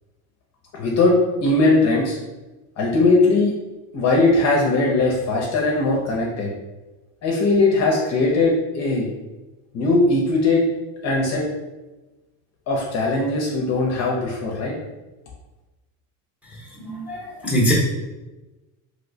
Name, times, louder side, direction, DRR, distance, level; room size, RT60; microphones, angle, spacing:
voice 1, 0.7-1.2 1.4-2.2 2.8-3.5 3.9-6.5 7.2-9.1 9.7-10.6 11.0-11.4 12.7-14.7, left 2 dB, 40° left, -2 dB, 0.7 m, -19 dB
voice 2, 16.8-17.7, equal, 5° right, -4 dB, 0.9 m, -22 dB
3.0 x 2.8 x 2.7 m, 1.1 s
supercardioid pair, 135°, 39 cm